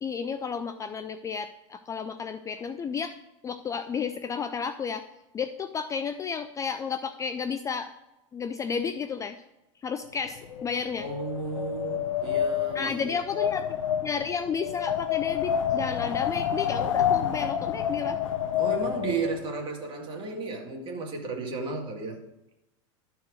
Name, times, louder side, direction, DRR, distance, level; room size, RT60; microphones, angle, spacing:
voice 1, 0.0-3.2 3.4-5.0 5.3-7.9 8.3-9.4 9.8-11.1 12.7-13.8 14.0-18.2, left 6 dB, 20° left, 10 dB, 0.4 m, -32 dB
Wind, 10.2-19.4, left 9 dB, 85° left, 0.9 m, -29 dB
voice 2, 11.0-13.2 18.6-22.2, right 4 dB, 30° right, 1 dB, 2.3 m, -33 dB
12.5 x 4.7 x 6.3 m, 0.95 s
supercardioid pair, 120°, 16 cm